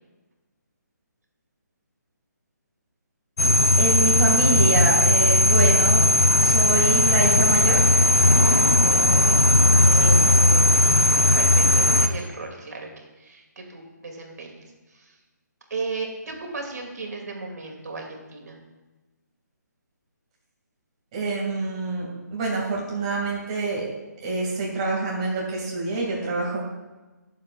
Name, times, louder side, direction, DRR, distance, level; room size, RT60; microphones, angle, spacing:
sound 1, 3.4-12.1, left 1 dB, 55° left, 0.9 m, -17 dB
voice 1, 3.8-6.0 6.4-7.9 8.4-9.4 9.8-10.6 21.1-23.8 24.2-26.6, right 3 dB, 20° right, -3 dB, 2.2 m, -27 dB
voice 2, 10.9-15.2 15.7-18.6, right 3 dB, 65° right, 1 dB, 2.5 m, -36 dB
20.5 x 7.4 x 2.5 m, 1.2 s
hypercardioid pair, 175°, 10 cm